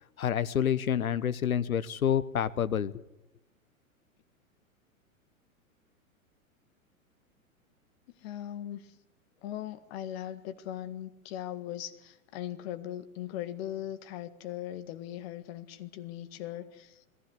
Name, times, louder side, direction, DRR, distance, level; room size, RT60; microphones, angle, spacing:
voice 1, 0.2-3.0, left 9 dB, 75° left, 15 dB, 1.0 m, -28 dB
voice 2, 8.2-8.9 9.4-17.0, left 12 dB, 45° left, 9 dB, 1.8 m, -39 dB
21.0 x 15.5 x 9.6 m, 0.94 s
figure-of-eight pair, 105°, 42 cm